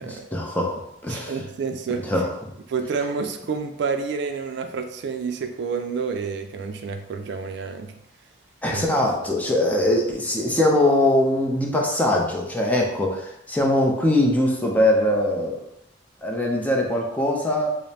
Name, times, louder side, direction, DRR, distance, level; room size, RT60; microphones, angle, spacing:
voice 1, 0.0-1.3 2.1-2.3 8.6-15.6 16.2-17.7, left 1 dB, 10° left, -1 dB, 0.5 m, -22 dB
voice 2, 1.1-2.0 2.7-7.9 8.7-8.8, right 5 dB, 65° right, 6 dB, 0.4 m, -29 dB
5.0 x 2.0 x 2.7 m, 0.78 s
head